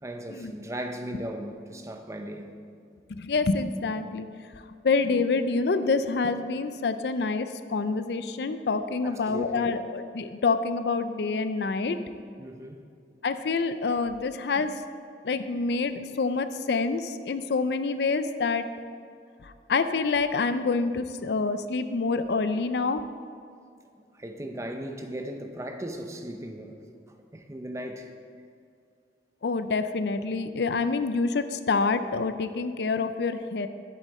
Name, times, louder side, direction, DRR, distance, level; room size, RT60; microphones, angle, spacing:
voice 1, 0.0-2.5 9.0-9.8 12.4-12.8 24.0-26.8 27.1-28.2, right 1 dB, 15° right, 5 dB, 0.7 m, -37 dB
voice 2, 3.2-4.3 4.8-12.0 13.2-14.7 15.2-18.6 19.4-23.0 29.4-33.7, left 4 dB, 65° left, 11 dB, 0.5 m, -27 dB
11.0 x 8.3 x 4.2 m, 2.3 s
head